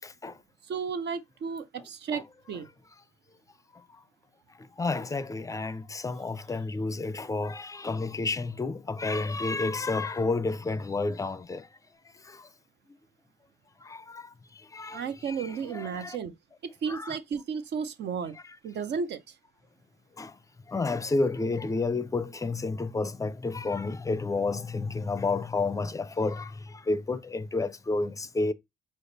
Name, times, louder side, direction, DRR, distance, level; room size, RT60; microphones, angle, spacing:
voice 1, 0.0-0.3 1.8-1.9 2.1-2.2 4.8-11.7 12.3-12.5 13.8-14.3 14.7-16.2 16.9-17.2 18.3-18.6 20.2-20.3 20.7-28.5, left 3 dB, 15° left, 0.4 m, -31 dB
voice 2, 0.7-2.2 2.5-2.7 14.9-16.3 16.8-18.4 18.6-19.2, right 6 dB, 60° right, 0.6 m, -33 dB
5.0 x 2.0 x 3.9 m
cardioid pair, 90°, 20 cm